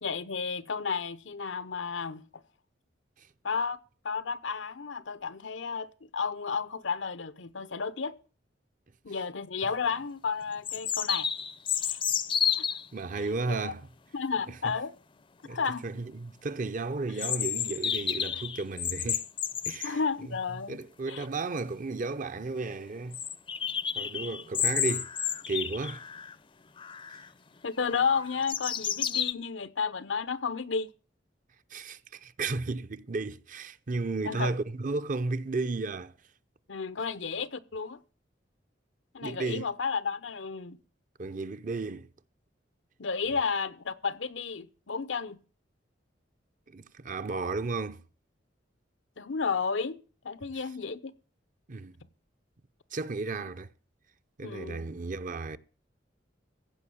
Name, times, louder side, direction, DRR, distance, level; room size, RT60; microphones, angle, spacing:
voice 1, 0.0-2.4 3.4-3.8 4.0-8.1 9.0-11.3 11.8-12.0 12.6-12.7 13.5-13.7 14.1-14.9 15.5-15.9 19.8-20.8 21.1-21.3 24.0-24.1 27.6-30.9 34.2-34.6 36.7-38.0 39.1-40.8 43.0-45.4 49.2-50.0 50.2-51.1 54.4-54.9, left 5 dB, 85° left, 0.8 m, -32 dB
sound 1, 9.6-9.7 10.6-12.9 17.2-19.9 21.6-21.7 21.9-22.0 22.4-22.5 23.1-26.3 26.8-27.3 27.8-29.3, left 8 dB, 30° left, 0.5 m, -31 dB
voice 2, 12.9-13.9 14.5-14.7 15.4-19.2 19.6-20.4 20.7-23.2 24.0-25.1 25.5-26.0 31.7-36.1 39.2-39.7 41.2-42.1 46.7-48.0 51.7-52.0 52.9-53.7 54.4-55.6, right 3 dB, 45° right, 0.6 m, -34 dB
15.5 x 5.5 x 8.5 m
head